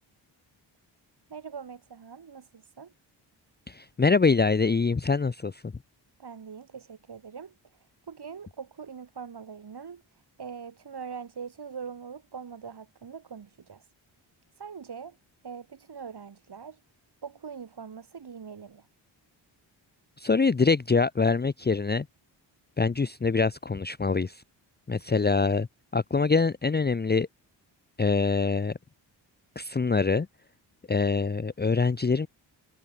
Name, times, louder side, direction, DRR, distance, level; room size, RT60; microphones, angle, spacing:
voice 1, 1.3-2.9 6.2-13.9 14.6-15.2 15.4-16.8 17.2-18.9, right 6 dB, 50° right, 3.5 m, -42 dB
voice 2, 3.7-5.7 20.2-22.1 22.8-24.4 24.9-25.7 25.9-27.3 28.0-28.7 29.6-30.3 30.9-32.3, left 4 dB, 20° left, 0.8 m, -24 dB
supercardioid pair, 50°, 49 cm